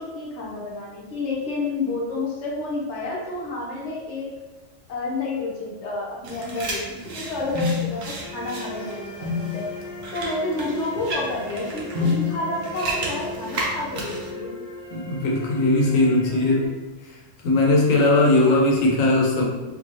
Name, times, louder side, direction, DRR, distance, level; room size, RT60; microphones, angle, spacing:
voice 1, 0.0-4.3 4.9-9.7 10.1-14.6 18.4-18.6, left 2 dB, 65° left, -2 dB, 1.0 m, -30 dB
sound 1, 6.2-14.3, left 1 dB, 60° right, 0.8 m, -30 dB
sound 2, 8.2-16.7, left 3 dB, 35° left, 0.9 m, -39 dB
voice 2, 14.9-16.7 17.0-17.2 17.4-19.4, left 2 dB, 90° left, -2 dB, 1.1 m, -19 dB
2.8 x 2.6 x 3.0 m, 1.2 s
omnidirectional pair, 1.3 m